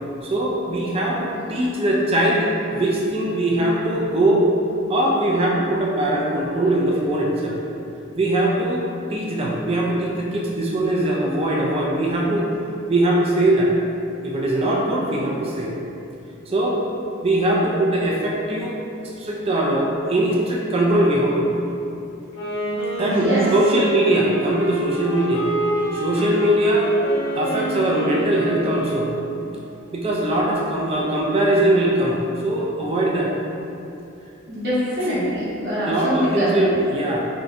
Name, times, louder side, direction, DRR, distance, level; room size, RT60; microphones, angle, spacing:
voice 1, 0.2-4.5 4.9-7.6 8.2-8.8 9.1-12.5 12.9-13.7 14.2-15.7 16.5-16.8 17.2-18.8 19.0-21.6 23.0-25.5 25.9-26.9 27.3-29.1 29.9-33.4 35.8-37.3, right 1 dB, 30° right, -3 dB, 0.4 m, -21 dB
Wind instrument woodwind instrument, 22.2-29.4, right 1 dB, 70° left, 1.1 m, -27 dB
voice 2, 23.0-23.5 34.5-36.6, equal, 50° right, -12 dB, 0.9 m, -23 dB
3.1 x 2.7 x 2.5 m, 2.7 s
head